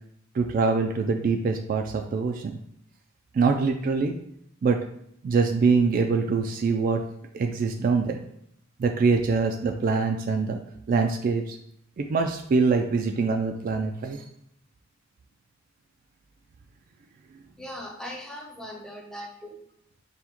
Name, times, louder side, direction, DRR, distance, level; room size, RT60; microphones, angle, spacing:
voice 1, 0.3-2.6 3.3-4.1 4.6-4.8 5.2-7.1 7.3-8.2 8.8-10.6 10.9-11.6 12.0-14.2, right 4 dB, 45° right, 5 dB, 0.3 m, -24 dB
voice 2, 17.6-19.6, equal, 5° left, 0 dB, 0.6 m, -39 dB
5.4 x 2.2 x 2.9 m, 0.71 s
head